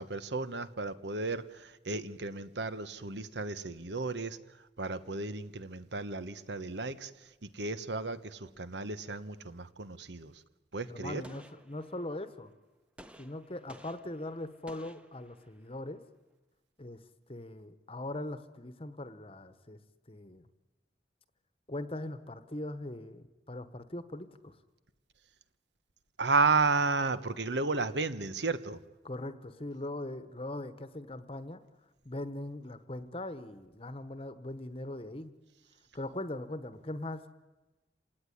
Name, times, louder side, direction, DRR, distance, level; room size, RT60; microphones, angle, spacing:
voice 1, 0.0-10.4 10.7-11.2 26.2-28.8, right 3 dB, 80° right, 1.2 m, -33 dB
voice 2, 10.9-12.5 13.2-16.0 16.8-17.0 17.3-19.8 20.1-20.5 21.7-24.6 29.0-31.6 32.0-35.3 35.9-37.3, left 1 dB, 30° left, 1.1 m, -40 dB
Gunshot gunfire, 11.2-12.3 13.0-15.8, equal, 5° right, 1.0 m, -55 dB
27.0 x 18.0 x 10.0 m
head